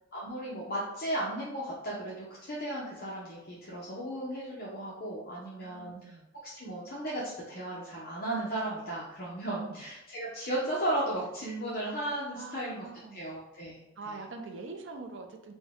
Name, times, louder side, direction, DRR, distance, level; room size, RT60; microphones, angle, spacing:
voice 1, 0.1-6.1 6.4-12.9 13.1-14.2, right 1 dB, 50° left, -6 dB, 0.7 m, -35 dB
voice 2, 5.5-6.3 9.6-9.8 12.3-13.3 14.0-15.5, right 3 dB, 70° right, 5 dB, 0.5 m, -44 dB
4.3 x 2.2 x 3.5 m, 0.89 s
head